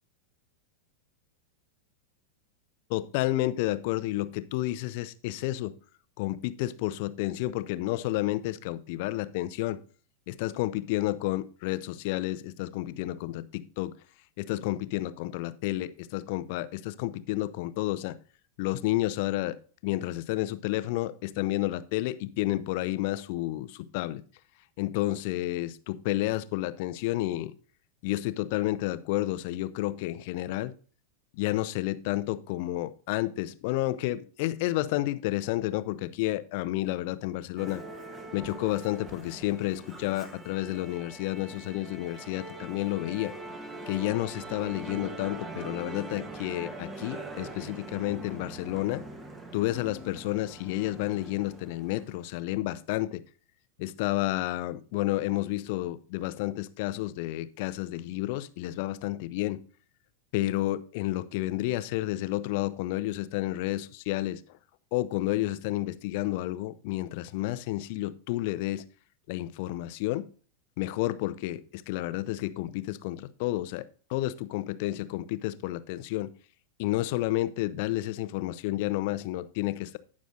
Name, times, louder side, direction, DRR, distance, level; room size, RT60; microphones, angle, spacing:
voice 1, 2.9-5.7 6.2-9.8 10.3-13.9 14.4-18.2 18.6-19.6 19.8-24.2 24.8-27.5 28.0-30.7 31.3-37.8 38.3-43.3 43.9-49.0 49.5-53.2 53.8-59.6 60.3-64.4 64.9-68.8 69.3-70.3 70.8-76.3 76.8-80.0, left 16 dB, 50° left, 15 dB, 0.5 m, -31 dB
Musical instrument, 37.6-52.2, right 2 dB, 20° right, 1.2 m, -43 dB
17.0 x 6.2 x 2.6 m, 0.40 s
figure-of-eight pair, 90°, 0 cm